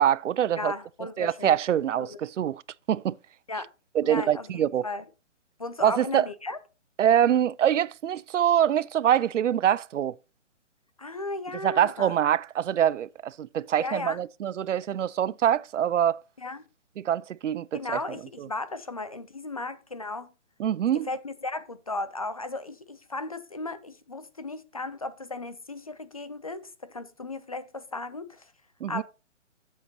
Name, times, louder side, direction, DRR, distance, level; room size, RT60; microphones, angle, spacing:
voice 1, 0.0-0.7 1.2-2.6 2.9-3.2 3.9-4.8 5.8-6.3 7.0-10.2 11.6-16.2 17.0-18.0 18.4-18.5 20.6-21.1 28.8-29.0, right 10 dB, 80° right, 0.5 m, -24 dB
voice 2, 0.6-1.6 2.0-2.2 3.5-3.7 4.0-5.0 5.6-6.6 11.0-12.2 13.8-14.2 16.4-16.7 17.7-20.3 21.1-28.5 28.9-29.0, left 2 dB, 30° left, 0.4 m, -35 dB
9.8 x 7.5 x 2.9 m
hypercardioid pair, 160°, 37 cm